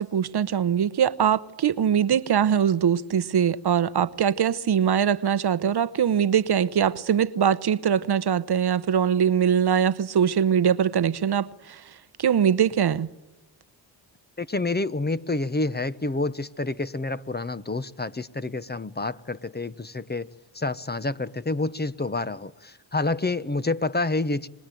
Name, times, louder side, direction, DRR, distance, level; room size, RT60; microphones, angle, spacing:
voice 1, 0.0-11.8 12.2-13.1, right 8 dB, 55° right, 1.0 m, -22 dB
voice 2, 14.4-20.3 20.5-24.5, left 2 dB, 20° left, 1.0 m, -28 dB
26.5 x 21.0 x 9.1 m
supercardioid pair, 50°, 46 cm